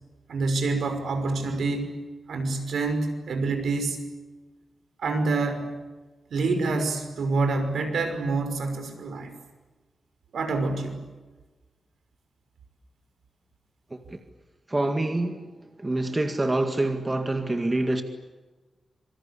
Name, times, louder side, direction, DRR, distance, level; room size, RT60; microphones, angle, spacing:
voice 1, 0.3-1.9 2.3-4.0 5.0-5.7 6.3-9.3 10.3-11.0, right 3 dB, 80° right, 5.8 m, -27 dB
voice 2, 14.7-15.5 15.8-18.0, right 2 dB, 20° right, 2.0 m, -26 dB
27.0 x 24.5 x 8.5 m
wide cardioid pair, 140°, 0 cm